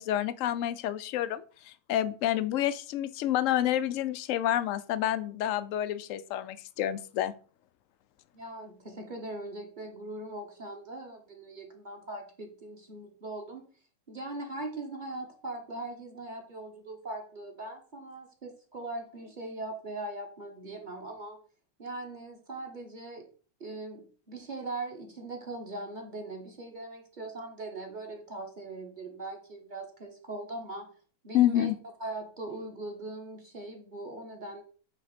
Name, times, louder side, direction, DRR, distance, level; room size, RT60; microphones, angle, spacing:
voice 1, 0.0-7.3 31.3-31.8, left 12 dB, 75° left, 14 dB, 0.7 m, -29 dB
voice 2, 8.3-13.6 14.1-21.4 21.8-23.3 23.6-30.9 31.2-31.7 32.0-34.6, right 2 dB, 30° right, 2 dB, 1.4 m, -40 dB
8.4 x 3.5 x 5.0 m, 0.40 s
omnidirectional pair, 1.9 m